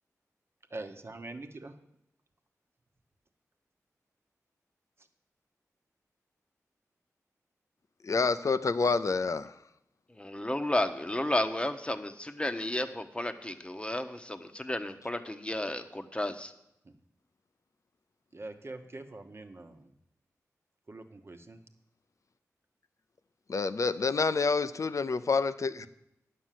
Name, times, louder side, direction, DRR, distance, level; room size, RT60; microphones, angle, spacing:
voice 1, 0.7-1.7 16.8-16.9 18.3-19.9 20.9-21.6, right 2 dB, 40° right, 6 dB, 1.1 m, -44 dB
voice 2, 8.0-9.5 23.5-25.9, left 4 dB, 60° left, 13 dB, 0.5 m, -28 dB
voice 3, 10.1-16.5, left 1 dB, 15° left, 9 dB, 1.0 m, -32 dB
10.0 x 6.4 x 7.5 m, 0.82 s
cardioid pair, 50°, 6 cm